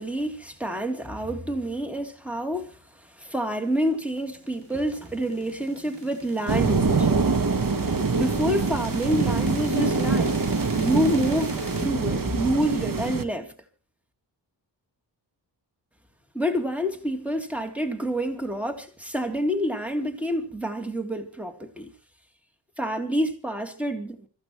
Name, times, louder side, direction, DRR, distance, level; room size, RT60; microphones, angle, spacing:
voice 1, 0.0-7.2 8.1-10.4 10.8-13.5 16.3-21.9 22.8-24.3, equal, 5° right, 3.1 m, -28 dB
sound 1, 3.7-11.8, right 2 dB, 65° right, 6.2 m, -40 dB
sound 2, 6.5-13.2, right 4 dB, 45° right, 1.5 m, -24 dB
25.0 x 15.0 x 3.2 m
cardioid pair, 40°, 45 cm